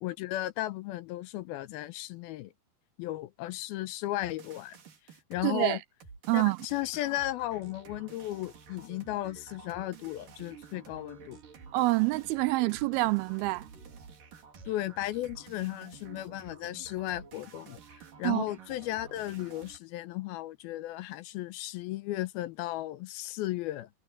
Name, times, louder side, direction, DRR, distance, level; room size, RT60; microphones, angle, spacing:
voice 1, 0.0-2.5 3.0-4.8 5.3-5.8 6.3-11.4 14.7-17.8 18.2-23.9, left 15 dB, 85° left, 2.5 m, -35 dB
sound 1, 4.2-5.5 6.0-19.8, right 5 dB, 60° right, 4.6 m, -51 dB
voice 2, 5.4-5.8 6.3-6.6 11.7-13.7 18.2-18.4, right 21 dB, 80° right, 2.4 m, -26 dB
omnidirectional pair, 4.5 m